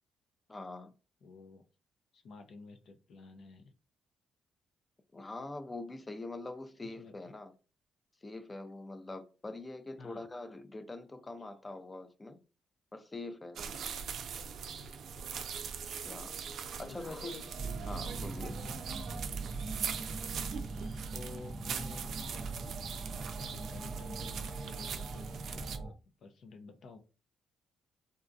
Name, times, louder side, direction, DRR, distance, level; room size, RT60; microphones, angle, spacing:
voice 1, 0.5-0.9 5.1-7.5 8.2-12.4 12.9-13.6 14.7-14.8 15.8-16.4 16.8-18.6 19.0-19.1, left 2 dB, 20° left, 0.5 m, -44 dB
voice 2, 1.2-1.6 2.1-3.7 6.8-7.1 10.0-10.2 16.7-17.5 18.3-18.8 20.8-27.0, left 4 dB, 65° left, 0.6 m, -52 dB
sound 1, 13.6-25.8, right 7 dB, 65° right, 0.4 m, -41 dB
sound 2, 17.5-25.9, right 3 dB, 30° right, 0.6 m, -41 dB
3.7 x 2.3 x 2.6 m
cardioid pair, 90°, 0 cm